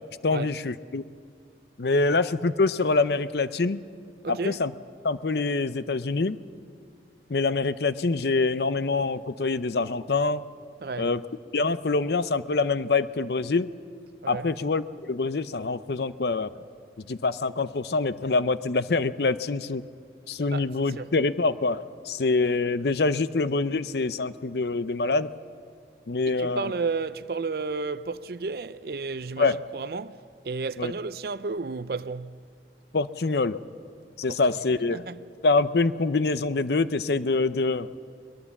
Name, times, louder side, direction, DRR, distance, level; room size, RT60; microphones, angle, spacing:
voice 1, 0.2-1.0 1.8-3.8 4.3-4.7 5.0-6.4 7.3-10.4 11.0-11.2 11.5-13.7 14.3-16.5 17.0-19.8 20.3-25.3 26.1-26.7 29.4-29.6 30.8-30.9 32.9-33.6 34.2-35.0 35.4-37.9, left 3 dB, 65° left, 0.6 m, -25 dB
voice 2, 4.2-4.6 10.8-11.1 14.2-14.5 20.5-21.1 26.3-32.4 34.3-34.4 34.9-35.2, right 4 dB, 55° right, 0.5 m, -33 dB
22.0 x 21.0 x 7.2 m
head